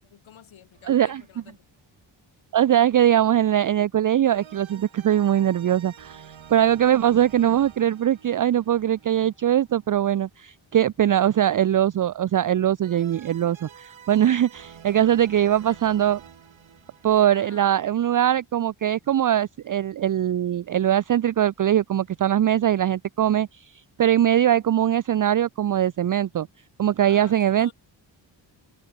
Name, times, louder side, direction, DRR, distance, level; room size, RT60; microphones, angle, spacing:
voice 1, 0.0-1.7 7.0-7.1 14.9-15.0 15.5-15.9 17.3-17.7 27.1-27.7, left 9 dB, 90° left, 6.3 m, -50 dB
sound 1, 0.7-1.7 4.3-10.3 12.8-18.5, right 8 dB, 85° right, 7.2 m, -49 dB
voice 2, 0.9-1.2 2.5-16.2 17.0-26.5 26.8-27.7, right 11 dB, 45° right, 0.5 m, -21 dB
wide cardioid pair, 100°, 46 cm